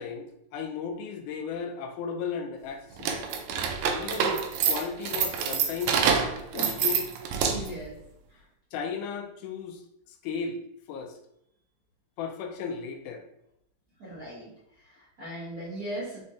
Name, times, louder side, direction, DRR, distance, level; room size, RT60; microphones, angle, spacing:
voice 1, 0.0-3.3 3.9-6.1 6.5-7.0 7.6-7.7 8.7-9.8 10.2-10.6 10.9-11.1 12.2-13.2, left 6 dB, 90° left, 5 dB, 2.0 m, -35 dB
sound 1, 3.0-7.8, right 6 dB, 80° right, 1.7 m, -27 dB
voice 2, 6.5-7.0 7.5-7.9 8.3-8.4 14.0-14.5 14.8-16.2, right 1 dB, 50° right, -8 dB, 1.1 m, -39 dB
5.1 x 3.2 x 2.8 m, 0.76 s
omnidirectional pair, 3.4 m